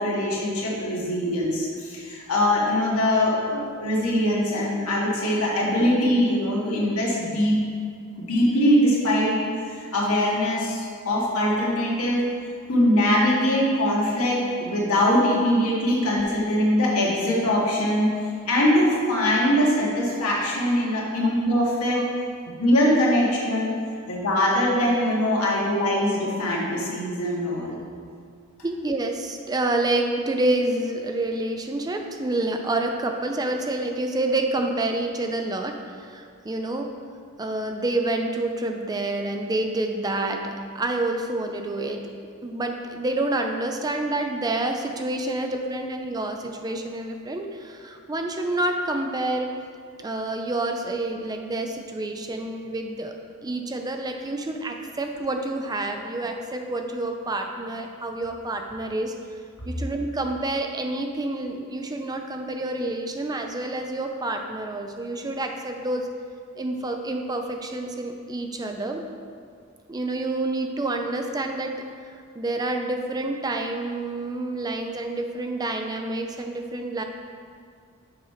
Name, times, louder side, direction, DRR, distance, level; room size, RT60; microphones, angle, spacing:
voice 1, 0.0-7.6 8.2-12.3 12.7-18.1 18.5-22.0 22.6-23.7 24.1-27.8 45.2-45.7, left 1 dB, 85° left, -4 dB, 1.7 m, -22 dB
voice 2, 28.6-37.0 37.4-42.0 42.4-49.5 50.0-53.1 53.4-59.1 59.6-66.1 66.6-69.1 69.9-71.8 72.3-77.0, right 2 dB, 20° right, 4 dB, 0.4 m, -28 dB
6.6 x 4.4 x 5.7 m, 2.2 s
head